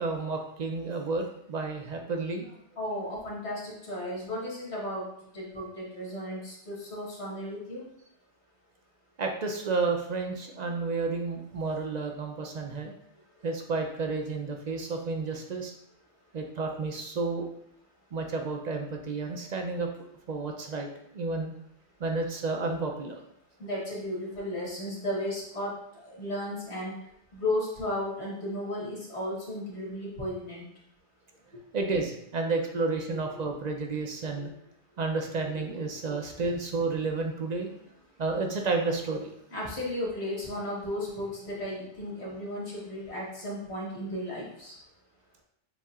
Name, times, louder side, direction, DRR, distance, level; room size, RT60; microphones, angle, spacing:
voice 1, 0.0-2.5 9.2-12.9 13.4-15.7 16.3-17.5 18.1-20.9 21.1-21.5 22.0-23.2 31.7-34.5 35.0-37.7 38.2-39.3, right 3 dB, 55° right, 3 dB, 0.5 m, -31 dB
voice 2, 2.8-5.1 5.3-7.8 10.6-10.8 23.6-25.7 26.0-26.9 27.3-30.6 33.1-33.2 34.3-34.4 36.1-36.2 39.5-44.8, left 1 dB, 70° left, -5 dB, 1.7 m, -34 dB
7.0 x 2.8 x 2.4 m, 0.74 s
omnidirectional pair, 1.2 m